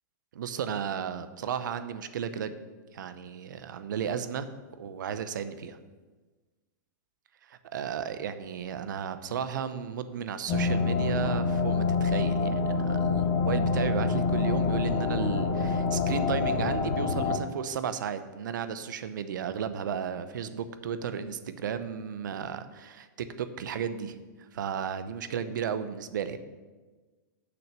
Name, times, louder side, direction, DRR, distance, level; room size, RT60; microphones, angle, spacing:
voice 1, 0.3-2.5 2.9-4.5 4.8-5.8 7.5-24.2 24.5-26.4, right 7 dB, 75° right, 11 dB, 0.7 m, -34 dB
sound 1, 10.5-17.4, left 4 dB, 30° left, 0.7 m, -26 dB
6.3 x 6.0 x 6.7 m, 1.3 s
supercardioid pair, 170°, 10 cm